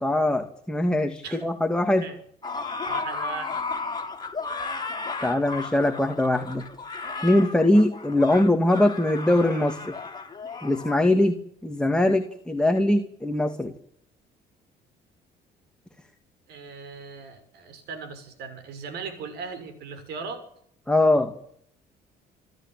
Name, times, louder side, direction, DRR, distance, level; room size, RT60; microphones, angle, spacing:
voice 1, 0.0-2.1 5.2-6.6 7.2-9.9 10.6-13.7 20.9-21.3, left 1 dB, 5° left, 5 dB, 2.4 m, -22 dB
sound 1, 2.4-10.9, left 4 dB, 25° left, 6.1 m, -34 dB
voice 2, 2.9-3.6 16.5-20.5, right 5 dB, 75° right, 11 dB, 6.4 m, -38 dB
28.0 x 13.5 x 9.2 m, 0.71 s
cardioid pair, 110°, 17 cm